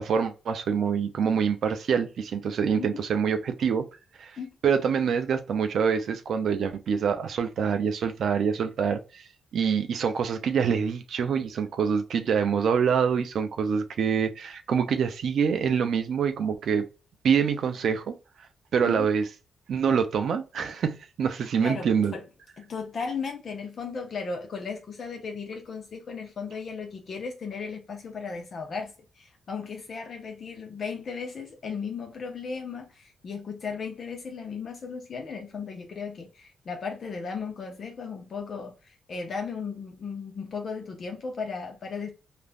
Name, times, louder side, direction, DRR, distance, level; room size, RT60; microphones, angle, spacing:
voice 1, 0.0-3.8 4.2-4.4 4.6-9.2 9.5-16.8 17.2-18.1 18.7-19.2 19.7-22.1, right 6 dB, 60° right, 0.4 m, -25 dB
voice 2, 21.6-22.2 22.6-42.1, left 5 dB, 45° left, 0.6 m, -36 dB
2.4 x 2.1 x 3.3 m
cardioid pair, 145°, 0 cm